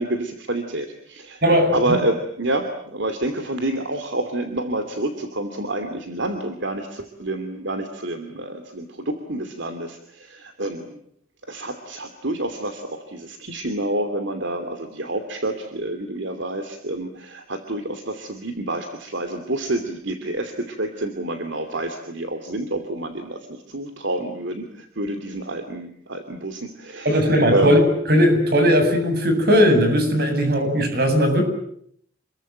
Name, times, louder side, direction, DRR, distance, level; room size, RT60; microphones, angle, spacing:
voice 1, 0.0-1.4 1.7-11.0 11.5-27.8, right 1 dB, 70° right, 8 dB, 2.8 m, -28 dB
voice 2, 1.4-1.9 27.0-27.8 28.1-31.4, equal, 55° right, 6 dB, 7.9 m, -18 dB
28.5 x 22.5 x 9.3 m, 0.68 s
head